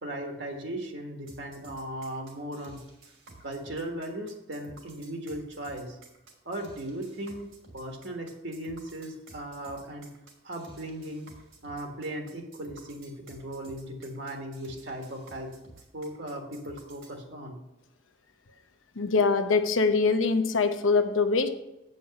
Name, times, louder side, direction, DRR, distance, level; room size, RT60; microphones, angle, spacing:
voice 1, 0.0-2.8 3.4-6.0 6.4-7.5 7.7-10.1 10.4-11.3 11.6-15.5 15.9-17.6, right 1 dB, 60° right, 2 dB, 1.6 m, -37 dB
sound 1, 1.3-17.2, right 3 dB, 85° right, 3.0 m, -53 dB
voice 2, 18.9-21.5, left 4 dB, 90° left, 7 dB, 0.9 m, -23 dB
8.9 x 5.3 x 6.3 m, 0.92 s
head